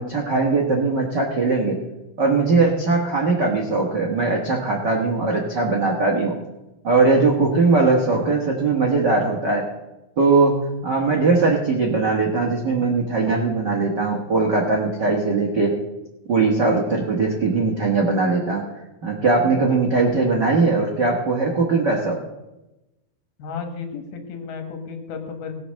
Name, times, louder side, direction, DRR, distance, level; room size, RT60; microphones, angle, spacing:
voice 1, 0.0-1.7 2.2-6.3 6.8-9.6 10.2-10.5 10.8-15.7 16.3-18.6 19.0-22.2, right 3 dB, 80° right, -1 dB, 0.9 m, -20 dB
voice 2, 23.4-25.5, left 5 dB, 75° left, 6 dB, 3.2 m, -33 dB
18.0 x 6.0 x 6.4 m, 0.99 s
omnidirectional pair, 4.5 m